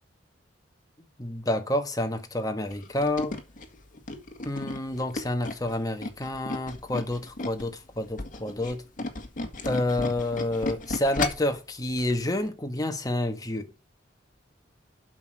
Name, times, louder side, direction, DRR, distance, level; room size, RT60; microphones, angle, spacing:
voice 1, 1.2-3.4 4.4-8.8 9.6-13.7, left 1 dB, 20° left, 1.4 m, -29 dB
Tools, 2.7-7.7 8.1-11.6 12.0-12.2 12.5-12.6, left 2 dB, 45° left, 1.8 m, -34 dB
8.3 x 6.1 x 7.5 m
head